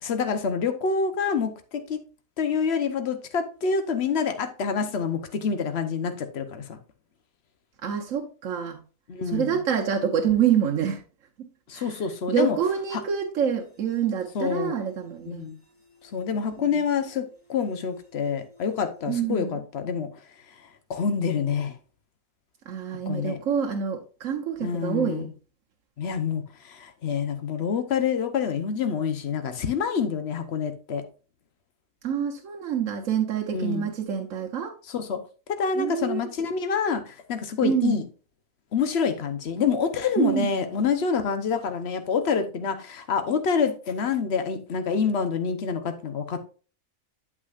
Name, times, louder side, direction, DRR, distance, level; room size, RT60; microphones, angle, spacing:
voice 1, 0.0-2.0 2.4-6.8 9.1-9.6 11.7-12.6 12.9-13.0 14.3-14.8 15.3-15.6 16.1-20.1 20.9-21.8 23.1-23.4 24.6-25.3 26.0-31.1 33.5-33.9 34.9-35.2 35.5-38.0 38.7-46.4, left 6 dB, 55° left, 1.1 m, -27 dB
voice 2, 7.8-8.8 9.3-11.0 11.7-12.0 12.3-15.5 16.6-16.8 19.1-19.6 22.7-25.3 32.0-34.7 35.8-36.3 37.6-38.0 40.2-40.5, right 8 dB, 75° right, 1.2 m, -26 dB
sound 1, 13.5-19.2, left 4 dB, 20° left, 1.9 m, -59 dB
8.6 x 7.4 x 2.5 m
omnidirectional pair, 1.4 m